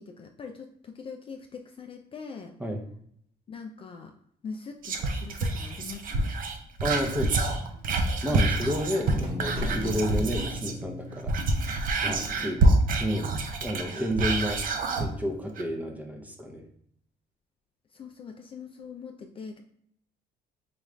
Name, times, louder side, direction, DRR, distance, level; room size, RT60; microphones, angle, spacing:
voice 1, 0.0-2.5 3.5-4.1 4.4-6.3 7.6-7.9 8.3-8.6 8.9-9.2 11.9-12.5 13.9-14.0 17.9-19.6, left 5 dB, 35° left, 4 dB, 0.4 m, -42 dB
Whispering, 4.8-10.8 11.2-15.1 15.6-15.7, right 2 dB, 55° right, 0.6 m, -27 dB
sound 1, 5.3-6.0 6.2-6.3 7.1-7.2 8.0-8.2 8.6-8.7 9.2-10.4, left 1 dB, 35° right, 1.1 m, -38 dB
voice 2, 6.8-7.6 8.2-11.4 12.0-13.3 13.6-14.6 14.9-16.7, equal, 10° right, 2 dB, 0.7 m, -31 dB
sound 2, 9.1-13.3, left 3 dB, 80° left, 0.6 m, -41 dB
5.0 x 2.4 x 3.2 m, 0.67 s
cardioid pair, 110°, 17 cm